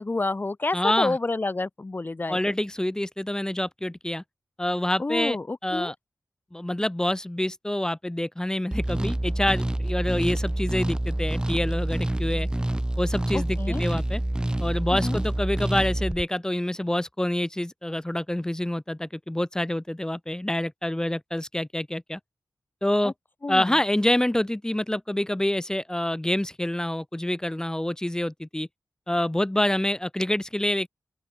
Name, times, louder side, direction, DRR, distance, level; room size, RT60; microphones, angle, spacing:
voice 1, 0.0-2.4 5.0-5.9 13.3-13.8 15.0-15.2 23.0-23.1 23.4-23.7, left 2 dB, 30° left, 2.4 m, -28 dB
voice 2, 0.7-1.2 2.3-4.2 4.6-6.0 6.5-12.5 13.0-14.2 14.6-22.2 22.8-23.1 23.5-28.7 29.1-30.9, left 1 dB, 10° left, 1.8 m, -27 dB
sound 1, 8.7-16.2, right 1 dB, 15° right, 3.4 m, -27 dB
open air
wide cardioid pair, 120°, 6 cm